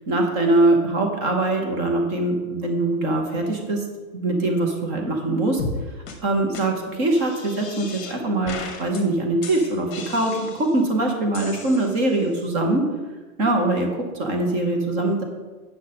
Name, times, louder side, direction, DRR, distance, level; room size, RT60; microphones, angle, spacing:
voice 1, 0.1-3.8 4.1-5.6 6.2-12.8 13.4-15.2, right 2 dB, 15° right, 2 dB, 0.7 m, -22 dB
sound 1, 5.6-5.8 6.1-6.2 6.5-6.6 7.1-8.2 8.5-9.0 9.4-10.8 11.3-12.3, left 3 dB, 20° left, 1.0 m, -36 dB
8.1 x 6.5 x 4.1 m, 1.3 s
supercardioid pair, 165°, 44 cm